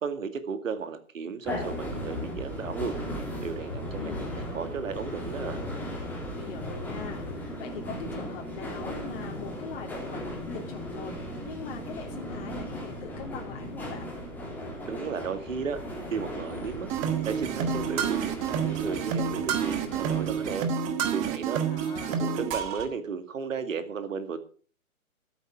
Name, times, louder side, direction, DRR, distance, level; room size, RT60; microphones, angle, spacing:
voice 1, 0.0-2.9 3.4-5.6 14.9-15.8 16.1-16.9 17.3-20.7 21.1-21.6 22.2-24.4, right 6 dB, 60° right, 10 dB, 2.3 m, -34 dB
sound 1, 1.5-20.6, equal, 5° left, 2.8 m, -37 dB
voice 2, 3.9-4.4 6.3-11.1 11.5-14.1 21.6-22.3, left 6 dB, 40° left, 1 dB, 2.9 m, -41 dB
sound 2, 16.9-22.9, right 7 dB, 15° right, 1.1 m, -29 dB
13.5 x 8.2 x 6.3 m, 0.42 s
hypercardioid pair, 145°, 43 cm